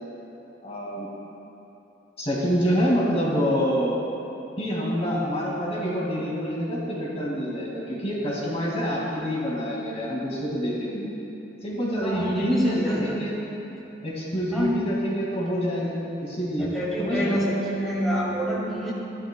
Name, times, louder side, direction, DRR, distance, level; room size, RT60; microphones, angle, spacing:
voice 1, 0.6-1.1 2.2-3.9 4.6-11.1 11.6-13.3 14.0-16.7 17.0-17.4, equal, 35° left, -5 dB, 2.1 m, -27 dB
voice 2, 12.0-13.2 14.5-14.8 16.6-18.9, equal, ahead, -8 dB, 2.2 m, -26 dB
16.5 x 12.5 x 2.2 m, 3.0 s
head